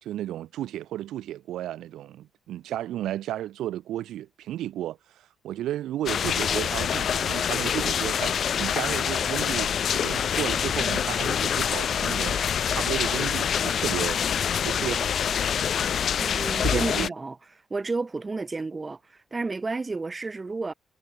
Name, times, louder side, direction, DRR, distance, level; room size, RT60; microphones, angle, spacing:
voice 1, 0.0-14.2 14.6-15.1 16.6-17.1, right 13 dB, 80° right, 2.2 m, -33 dB
sound 1, 6.1-17.1, left 8 dB, 55° left, 4.8 m, -26 dB
voice 2, 16.2-17.4 17.7-20.7, right 3 dB, 25° right, 3.2 m, -31 dB
cardioid pair, 90°, 0 cm